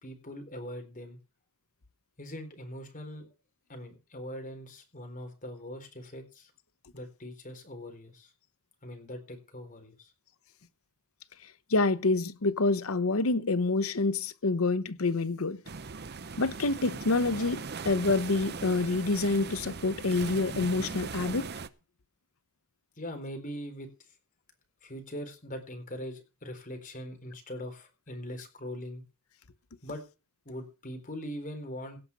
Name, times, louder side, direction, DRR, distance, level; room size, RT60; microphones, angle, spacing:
voice 1, 0.0-1.2 2.2-3.3 3.7-6.5 6.9-8.3 8.8-10.1 23.0-24.1 24.8-29.0 29.8-30.0 30.5-32.0, equal, 40° left, 4.0 m, -41 dB
voice 2, 11.7-15.6 16.4-21.5, left 3 dB, 75° left, 0.9 m, -27 dB
sound 1, 15.7-21.7, right 4 dB, 50° right, 0.8 m, -39 dB
17.0 x 6.0 x 6.9 m
head